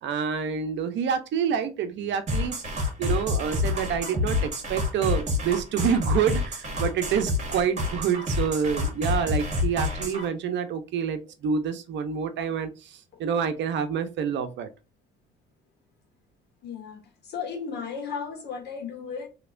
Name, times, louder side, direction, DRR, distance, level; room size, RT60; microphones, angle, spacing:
voice 1, 0.0-2.5 3.0-12.9 13.2-14.7, right 7 dB, 65° right, 0.7 m, -27 dB
sound 1, 2.3-10.3, left 2 dB, 35° right, 1.8 m, -28 dB
voice 2, 16.6-19.3, left 6 dB, 55° left, 1.5 m, -35 dB
3.2 x 2.9 x 2.5 m
supercardioid pair, 75°, 21 cm